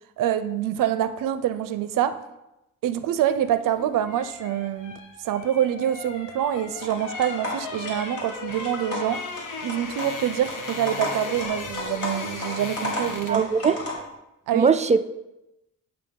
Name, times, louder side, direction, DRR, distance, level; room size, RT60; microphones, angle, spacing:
voice 1, 0.2-2.2 2.8-5.0 5.2-9.2 9.6-13.7 14.5-14.7, right 10 dB, 80° right, 13 dB, 0.5 m, -26 dB
sound 1, 3.5-13.5 13.8-14.0, left 4 dB, 70° left, 1.1 m, -37 dB
sound 2, 6.8-13.9, left 1 dB, 45° left, 2.1 m, -34 dB
voice 2, 13.3-13.8 14.5-15.0, right 5 dB, 25° right, 12 dB, 0.3 m, -20 dB
8.6 x 2.9 x 5.2 m, 0.92 s
cardioid pair, 90°, 32 cm